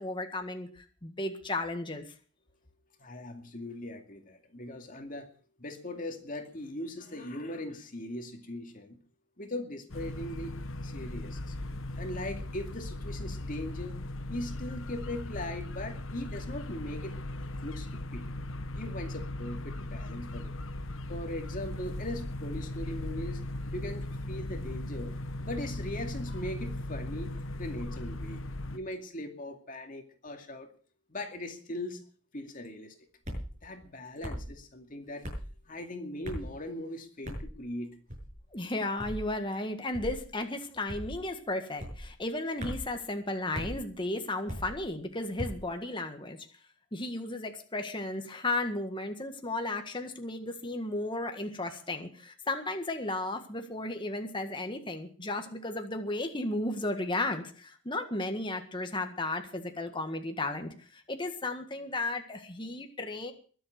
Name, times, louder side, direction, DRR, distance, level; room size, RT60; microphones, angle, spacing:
voice 1, 0.0-2.1 38.5-46.4 46.9-63.3, left 2 dB, 25° left, 5 dB, 1.7 m, -34 dB
voice 2, 3.0-5.3 5.6-9.0 9.4-10.5 10.8-11.5 12.0-14.0 14.3-17.2 17.6-18.3 18.8-20.5 21.1-23.4 23.7-25.2 25.5-28.4 28.7-30.7 31.1-32.0 32.3-32.9 33.6-35.3 35.7-38.0, left 1 dB, 40° left, 5 dB, 2.3 m, -39 dB
sound 1, 9.9-28.8, left 1 dB, 70° left, 1.1 m, -38 dB
sound 2, 33.2-33.5 34.2-34.5 35.2-35.5 36.2-36.5 37.2-37.5 38.1-38.4 39.0-39.3 39.9-40.2 40.9-41.2 41.8-42.0 42.6-42.9 43.5-43.8 44.5-44.8 45.4-45.6, equal, 35° right, 6.7 m, -38 dB
22.5 x 7.9 x 6.0 m, 0.41 s
head